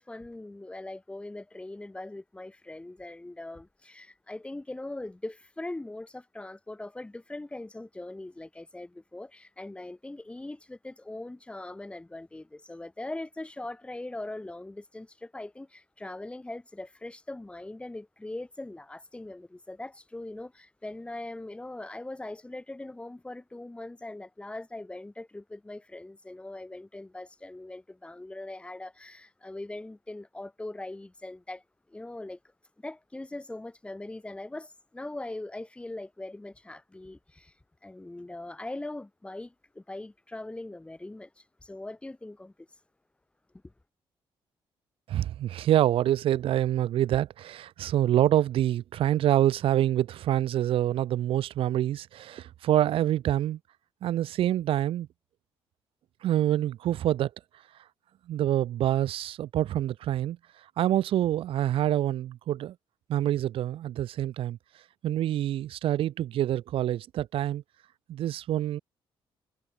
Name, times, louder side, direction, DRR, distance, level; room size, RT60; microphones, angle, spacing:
voice 1, 0.0-31.6 31.9-32.4 32.8-37.5 37.8-42.7 43.6-43.7, left 2 dB, 10° left, 4.1 m, -41 dB
voice 2, 45.1-53.6 54.0-55.1 56.2-57.3 58.3-60.4 60.8-62.7 63.1-64.6 65.0-67.6 68.1-68.8, right 12 dB, 75° right, 0.9 m, -26 dB
cardioid pair, 115°, 10 cm